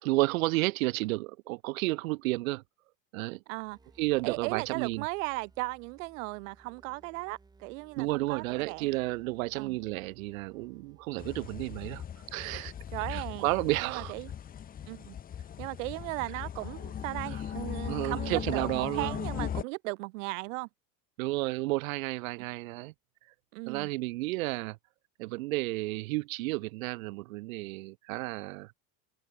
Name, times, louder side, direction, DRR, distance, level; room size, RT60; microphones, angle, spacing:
voice 1, 0.0-2.6 3.1-3.4 4.0-5.0 8.0-12.0 12.3-12.7 13.1-14.1 17.3-17.4 17.9-19.2 21.2-22.9 23.7-24.8 25.2-28.7, right 21 dB, 85° right, 1.2 m, -32 dB
sound 1, 3.5-13.0, right 3 dB, 10° right, 6.5 m, -61 dB
voice 2, 4.2-8.9 9.5-9.8 12.9-13.5 13.8-14.3 14.9-15.1 15.6-20.7 22.4-22.5 23.5-23.9, right 26 dB, 70° right, 1.3 m, -37 dB
sound 2, 11.2-19.6, left 9 dB, 20° left, 2.0 m, -38 dB
supercardioid pair, 165°, 40 cm